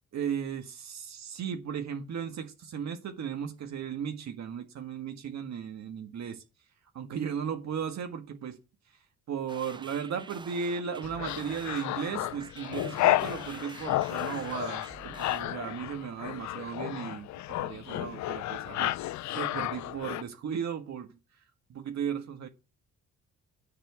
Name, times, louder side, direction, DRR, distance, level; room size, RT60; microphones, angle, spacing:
voice 1, 0.1-6.4 6.9-8.6 8.9-9.0 9.3-21.2 21.7-22.5, right 7 dB, 65° right, 1.7 m, -36 dB
sound 1, 9.5-15.4, right 4 dB, 15° right, 0.4 m, -48 dB
sound 2, 11.0-20.2, left 15 dB, 70° left, 0.5 m, -32 dB
10.0 x 4.4 x 7.5 m
cardioid pair, 90°, 30 cm